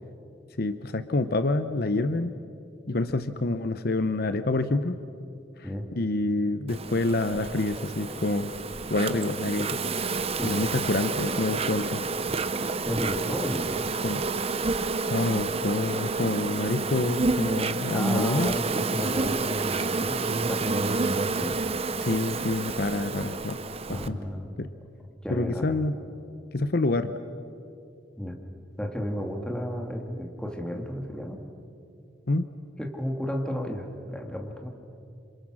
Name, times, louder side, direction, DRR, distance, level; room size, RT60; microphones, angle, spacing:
voice 1, 0.6-2.3 2.9-5.0 5.6-8.5 8.9-9.8 10.4-12.0 14.0-14.2 15.1-18.6 22.0-23.6 23.9-24.2 24.6-24.7 25.3-26.0 26.5-27.1 32.3-32.5, left 2 dB, 60° left, 10 dB, 0.8 m, -27 dB
Insect, 6.7-24.1, right 3 dB, 35° right, 0.8 m, -29 dB
voice 2, 10.4-10.8 12.8-13.9 17.9-21.0 21.4-21.6 23.9-24.5 25.2-25.7 28.2-28.4 28.8-31.4 32.8-34.7, equal, 5° left, 2 dB, 2.4 m, -33 dB
28.0 x 27.0 x 6.4 m, 2.6 s
head